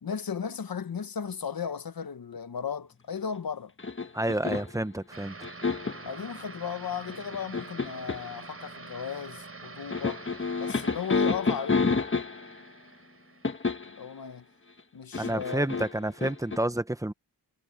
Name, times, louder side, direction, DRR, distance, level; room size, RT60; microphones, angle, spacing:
voice 1, 0.0-3.7 4.5-4.6 6.0-10.2 10.6-11.9 13.8-14.5 14.9-15.8, left 7 dB, 55° left, 1.1 m, -36 dB
sound 1, 3.8-4.8 5.4-6.1 7.1-8.3 9.9-12.6 13.4-14.0 15.1-16.6, left 4 dB, 30° left, 1.5 m, -29 dB
voice 2, 4.1-5.3 15.2-17.1, right 1 dB, 10° right, 0.8 m, -29 dB
sound 2, 5.1-14.2, right 3 dB, 35° right, 5.1 m, -46 dB
wide cardioid pair, 145°, 41 cm